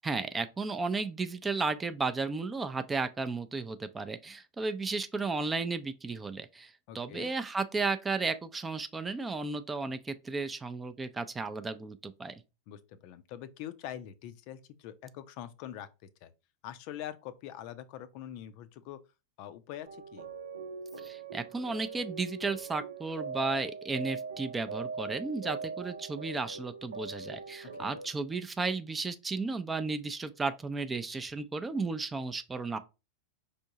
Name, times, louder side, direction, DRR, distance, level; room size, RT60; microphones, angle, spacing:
voice 1, 0.0-12.4 21.0-32.8, right 3 dB, 15° right, 0.5 m, -34 dB
voice 2, 6.9-7.3 12.7-15.9 16.2-16.3 16.6-19.0 19.4-20.3 27.8-28.0, left 11 dB, 45° left, 0.5 m, -44 dB
sound 1, 19.8-28.1, right 4 dB, 70° right, 0.8 m, -41 dB
5.3 x 3.4 x 2.8 m
figure-of-eight pair, 90°, 0 cm